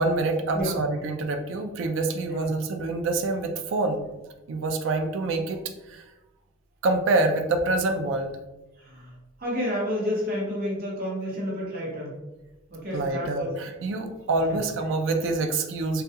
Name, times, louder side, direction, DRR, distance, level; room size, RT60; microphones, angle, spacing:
voice 1, 0.0-4.1 4.5-5.6 5.9-6.0 6.8-8.3 12.9-16.0, right 2 dB, 60° right, 5 dB, 0.3 m, -26 dB
voice 2, 9.4-12.2 12.7-13.5 14.5-14.6, equal, 45° right, -4 dB, 0.8 m, -30 dB
2.3 x 2.2 x 2.7 m, 1.0 s
head